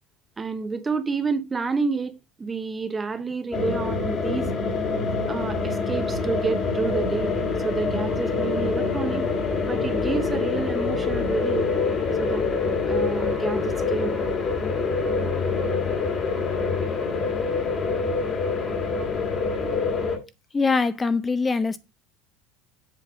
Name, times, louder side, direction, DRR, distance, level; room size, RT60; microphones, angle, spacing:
voice 1, 0.4-4.5 5.3-7.4 7.6-9.3 9.6-11.7 12.2-14.1, right 4 dB, 20° right, 0.8 m, -29 dB
sound 1, 3.5-20.2, left 4 dB, 35° left, 1.8 m, -25 dB
voice 2, 20.5-21.8, left 4 dB, 20° left, 0.7 m, -23 dB
7.6 x 4.0 x 5.1 m
supercardioid pair, 110°, 0 cm